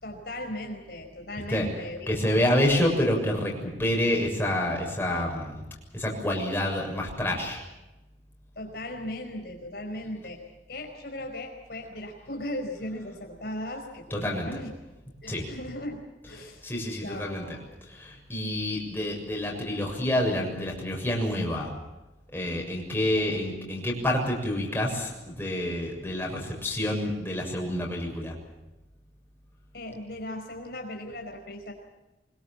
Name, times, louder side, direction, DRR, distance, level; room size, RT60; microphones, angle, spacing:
voice 1, 0.0-2.8 8.5-10.4 10.7-14.7 15.2-16.6 17.0-17.5 29.7-31.7, left 1 dB, 60° left, 3 dB, 5.0 m, -37 dB
voice 2, 1.5-5.7 5.9-7.6 14.1-14.6 15.3-15.5 16.2-21.7 22.3-28.3, left 1 dB, 10° left, -1 dB, 6.9 m, -28 dB
25.0 x 22.5 x 7.5 m, 1.0 s
head